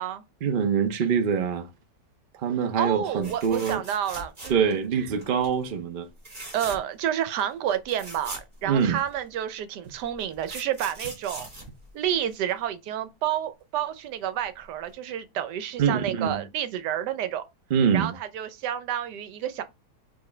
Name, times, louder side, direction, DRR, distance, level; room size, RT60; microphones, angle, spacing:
voice 1, 0.4-1.7 2.4-3.8 4.5-6.1 8.7-9.0 15.8-16.4 17.7-18.1, right 7 dB, 50° right, 0.6 m, -24 dB
voice 2, 2.7-4.8 6.5-11.5 11.9-17.4 17.9-19.6, right 10 dB, 90° right, 1.2 m, -30 dB
sound 1, 3.2-4.8 5.2-5.5 6.2-7.0 7.4-7.5 7.7-9.2 10.0-12.5 14.4-14.6 14.9-15.0, right 1 dB, 30° right, 1.7 m, -41 dB
4.7 x 2.9 x 3.2 m
omnidirectional pair, 1.7 m